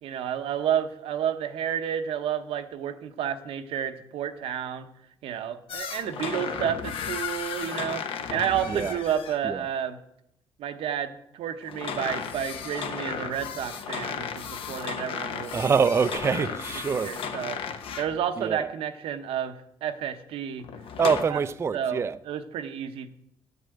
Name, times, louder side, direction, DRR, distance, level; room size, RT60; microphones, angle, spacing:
voice 1, 0.0-4.9 5.2-8.0 8.3-10.0 10.6-15.5 16.9-17.6 18.0-20.6 21.3-21.4 21.7-23.1, right 9 dB, 85° right, 0.9 m, -31 dB
sound 1, 5.7-9.4 11.6-18.2 20.6-21.2, left 6 dB, 70° left, 1.1 m, -34 dB
voice 2, 15.5-17.1 18.4-18.7 21.0-22.2, right 6 dB, 30° right, 0.4 m, -25 dB
8.9 x 8.2 x 7.7 m
cardioid pair, 105°, 9 cm